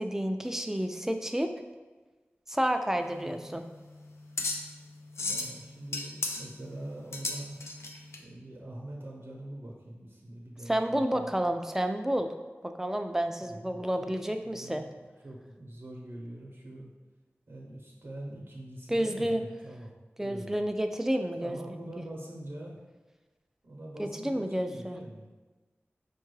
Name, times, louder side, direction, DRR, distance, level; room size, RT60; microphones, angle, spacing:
voice 1, 0.0-1.5 2.5-3.7 10.7-12.3 12.6-14.9 18.9-19.4 20.2-21.6 24.0-25.0, right 1 dB, 10° right, 6 dB, 0.3 m, -30 dB
sound 1, 3.0-8.2, left 2 dB, 85° left, 0.4 m, -36 dB
voice 2, 3.1-3.6 5.2-7.6 8.2-11.3 13.4-16.9 17.5-20.6 21.4-22.8 23.6-25.3, right 1 dB, 65° right, -2 dB, 0.6 m, -44 dB
4.5 x 2.2 x 3.1 m, 1.3 s
wide cardioid pair, 55°, 5 cm